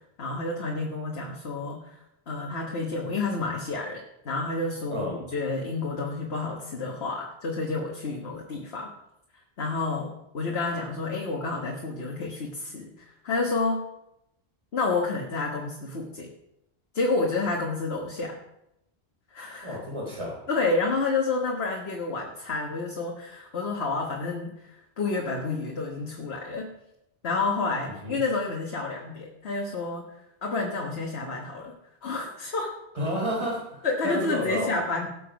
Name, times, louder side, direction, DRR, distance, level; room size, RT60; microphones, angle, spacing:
voice 1, 0.2-2.0 2.3-8.9 9.6-13.8 14.7-16.3 16.9-18.4 19.3-19.8 20.5-26.7 27.2-30.1 30.4-31.7 32.0-32.7 33.8-35.1, left 3 dB, 75° left, -1 dB, 1.7 m, -29 dB
voice 2, 19.6-20.4 27.8-28.2 32.9-34.7, equal, 30° right, -3 dB, 3.8 m, -31 dB
17.5 x 6.9 x 5.2 m, 0.85 s
omnidirectional pair, 1.1 m